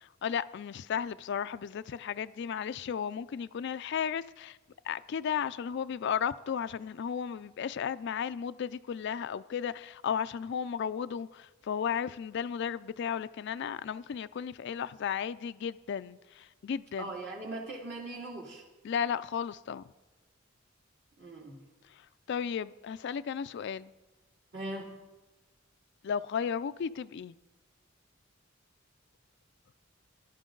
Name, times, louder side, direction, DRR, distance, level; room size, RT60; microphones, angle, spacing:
voice 1, 0.0-4.6 4.8-17.1 18.8-19.8 21.9-23.9 26.0-27.3, left 7 dB, 60° left, 13 dB, 0.4 m, -34 dB
voice 2, 17.0-18.6 21.2-21.6 24.5-25.0, right 2 dB, 55° right, -2 dB, 2.6 m, -40 dB
19.5 x 11.5 x 3.9 m, 1.2 s
head